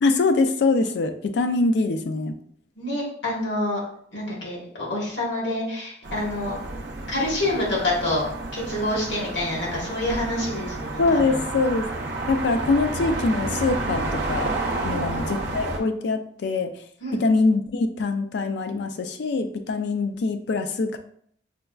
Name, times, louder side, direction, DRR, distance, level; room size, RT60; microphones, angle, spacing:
voice 1, 0.0-2.4 11.0-11.9 12.3-14.5 14.8-16.8 17.1-21.0, left 3 dB, 65° left, 8 dB, 0.4 m, -23 dB
voice 2, 2.8-3.8 4.1-6.5 7.1-8.2 8.5-11.4 14.9-15.3 17.0-17.2, left 1 dB, 85° left, -4 dB, 1.4 m, -27 dB
sound 1, 6.0-15.8, right 2 dB, 60° right, 0.5 m, -30 dB
5.1 x 2.3 x 2.3 m, 0.64 s
head